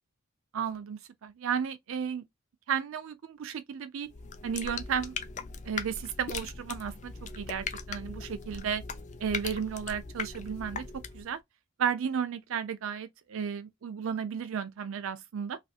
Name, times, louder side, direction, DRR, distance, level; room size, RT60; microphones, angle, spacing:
voice 1, 0.5-2.2 2.7-4.1 4.4-5.1 5.6-8.8 9.2-11.4 11.8-15.6, right 7 dB, 65° right, 0.4 m, -33 dB
sound 1, 4.1-11.3, left 5 dB, 35° left, 0.4 m, -39 dB
3.1 x 2.8 x 2.3 m
head